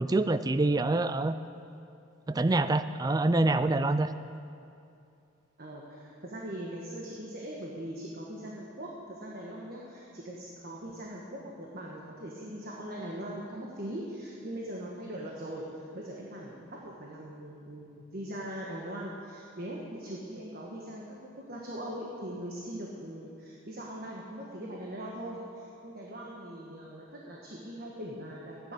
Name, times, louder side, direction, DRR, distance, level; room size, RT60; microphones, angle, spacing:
voice 1, 0.0-1.3 2.3-4.1, right 2 dB, 20° right, 12 dB, 0.4 m, -26 dB
voice 2, 5.6-21.1 21.5-28.7, right 1 dB, 50° right, -2 dB, 1.4 m, -41 dB
14.0 x 9.7 x 6.7 m, 2.6 s
head